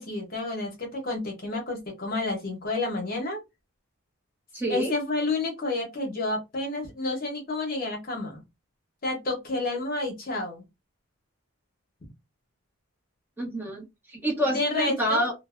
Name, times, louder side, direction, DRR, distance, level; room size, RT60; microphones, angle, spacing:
voice 1, 0.0-3.4 4.7-8.4 9.0-10.6 14.5-15.2, left 2 dB, 40° left, 1 dB, 0.8 m, -30 dB
voice 2, 4.5-4.9 13.4-15.3, equal, 10° right, -2 dB, 0.7 m, -28 dB
2.6 x 2.0 x 2.3 m, 0.22 s
head